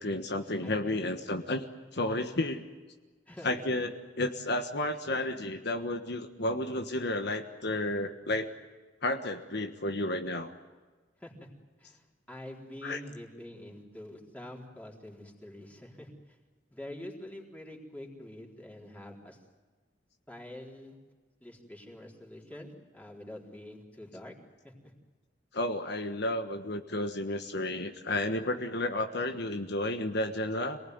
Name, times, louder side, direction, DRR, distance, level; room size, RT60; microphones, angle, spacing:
voice 1, 0.0-1.6 1.9-2.7 3.4-8.5 9.0-10.5 12.8-13.0 25.5-30.8, left 1 dB, 65° left, 5 dB, 1.4 m, -32 dB
voice 2, 0.6-1.0 3.3-3.7 11.2-11.5 11.8-16.4 16.7-19.4 20.3-21.0 21.4-24.3 24.6-24.9, left 1 dB, 10° left, -1 dB, 4.2 m, -46 dB
27.0 x 19.0 x 9.5 m, 1.4 s
head